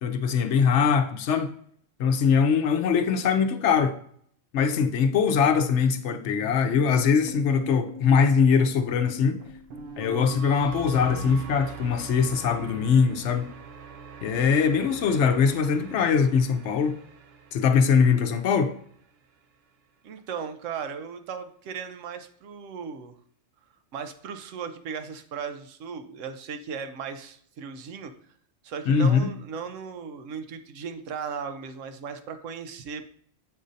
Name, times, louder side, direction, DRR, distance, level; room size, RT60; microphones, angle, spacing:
voice 1, 0.0-1.5 2.0-3.9 4.5-9.4 10.0-13.5 14.2-16.9 17.5-18.7 28.9-29.2, left 6 dB, 70° left, 0.9 m, -22 dB
sound 1, 6.7-18.9, right 3 dB, 60° right, 0.8 m, -42 dB
voice 2, 20.0-23.1 23.9-28.1 28.6-33.0, right 6 dB, 90° right, 1.0 m, -37 dB
7.6 x 2.6 x 5.0 m
omnidirectional pair, 1.3 m